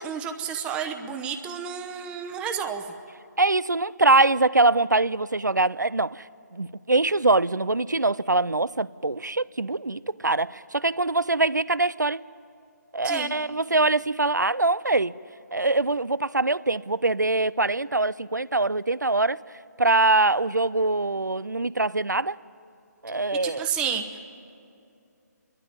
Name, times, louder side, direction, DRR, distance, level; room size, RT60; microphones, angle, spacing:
voice 1, 0.0-2.8 13.0-13.3 23.3-24.3, right 7 dB, 10° right, 0.9 m, -31 dB
voice 2, 3.4-6.3 6.5-12.2 12.9-15.2 15.5-19.4 19.8-22.4 23.0-23.7, right 2 dB, 90° right, 0.4 m, -23 dB
29.5 x 12.5 x 9.5 m
figure-of-eight pair, 145°, 9 cm